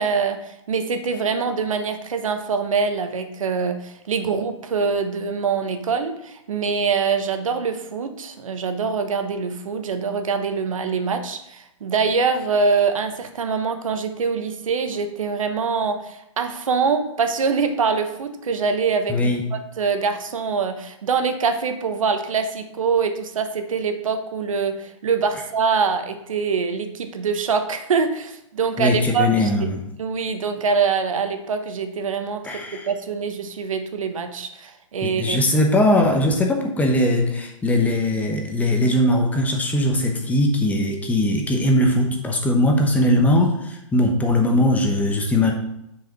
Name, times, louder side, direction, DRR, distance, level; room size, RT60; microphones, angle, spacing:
voice 1, 0.0-19.2 19.5-29.7 30.0-35.4, right 5 dB, 80° right, 7 dB, 1.1 m, -24 dB
voice 2, 19.1-19.4 28.8-29.8 32.4-32.9 35.0-45.5, left 1 dB, 10° left, 2 dB, 0.9 m, -20 dB
6.4 x 4.9 x 5.4 m, 0.83 s
hypercardioid pair, 145°, 17 cm